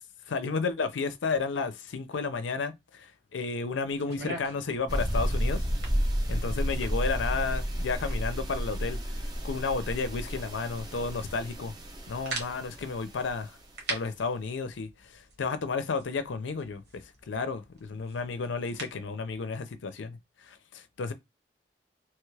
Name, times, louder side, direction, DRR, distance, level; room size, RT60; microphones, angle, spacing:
voice 1, 0.3-5.6 6.3-9.0 9.4-11.7 12.1-13.6 13.9-16.8 17.3-21.1, left 4 dB, 85° left, 0.5 m, -32 dB
sound 1, 3.9-19.1, right 2 dB, 60° right, 1.2 m, -45 dB
sound 2, 4.9-13.3, equal, 20° right, 0.5 m, -31 dB
3.1 x 2.3 x 3.1 m
head